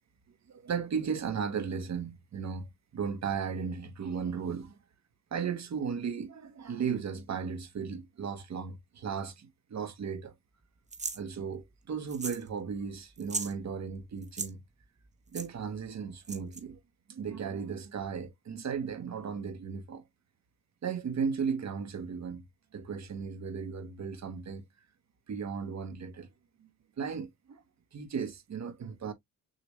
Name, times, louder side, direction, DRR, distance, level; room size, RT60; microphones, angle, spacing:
voice 1, 0.5-2.7 2.9-4.8 5.3-10.3 11.1-14.6 15.3-16.8 17.1-20.0 20.8-22.4 22.7-24.6 25.3-26.3 27.0-27.6 27.9-29.1, right 6 dB, 50° right, 1.0 m, -35 dB
sound 1, 10.9-11.2 12.1-12.5 12.7-12.8 13.2-13.5 14.2-14.5 15.3-15.5 16.2-16.6, right 4 dB, 20° right, 0.8 m, -36 dB
6.7 x 2.2 x 3.1 m
cardioid pair, 105°, 36 cm